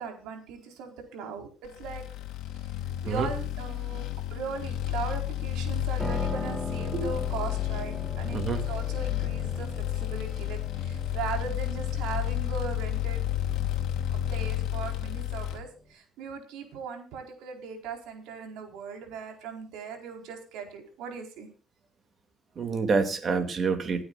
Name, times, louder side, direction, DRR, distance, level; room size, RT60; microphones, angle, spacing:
voice 1, 0.0-2.0 2.6-2.7 3.0-13.2 14.1-21.5, right 5 dB, 80° right, 4 dB, 4.4 m, -39 dB
sound 1, 1.8-15.6, left 11 dB, 65° left, 2.4 m, -31 dB
Piano, 6.0-15.9, equal, ahead, 2.2 m, -42 dB
voice 2, 8.3-8.6 22.6-24.0, right 5 dB, 30° right, 8 dB, 2.6 m, -27 dB
27.5 x 9.4 x 2.5 m, 0.35 s
cardioid pair, 145°, 0 cm